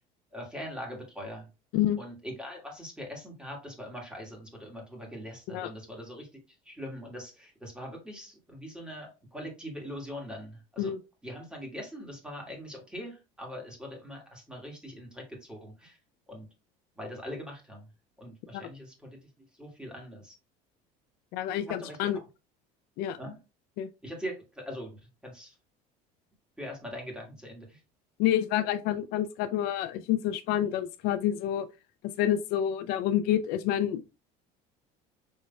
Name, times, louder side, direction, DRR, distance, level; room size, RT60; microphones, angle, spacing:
voice 1, 0.3-1.4 2.0-6.3 6.6-10.9 11.2-16.0 16.3-16.5 17.0-17.8 18.2-19.2 19.6-20.3 21.8-22.1 23.2-23.4 24.0-24.9 25.2-25.5 26.6-27.8, equal, 5° right, 1.7 m, -42 dB
voice 2, 21.3-22.2 23.0-23.2 23.8-23.9 28.2-31.7 32.0-34.0, left 11 dB, 70° left, 0.4 m, -28 dB
5.4 x 3.1 x 2.2 m
cardioid pair, 135°, 16 cm